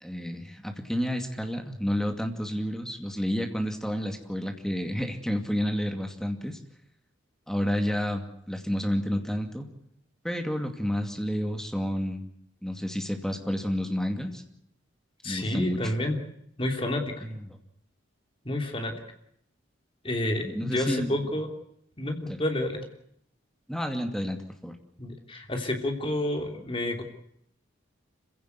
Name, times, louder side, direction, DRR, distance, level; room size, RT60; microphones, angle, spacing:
voice 1, 0.0-6.6 7.5-9.7 10.2-12.3 12.6-14.4 15.2-15.9 17.2-17.6 20.4-21.1 22.3-22.4 23.7-24.8, equal, 5° left, 4 dB, 2.4 m, -30 dB
voice 2, 15.2-16.2 16.6-17.2 18.4-18.9 20.0-21.5 22.0-22.8 25.0-27.0, left 1 dB, 25° left, 3 dB, 3.2 m, -29 dB
26.5 x 16.5 x 8.2 m, 0.74 s
head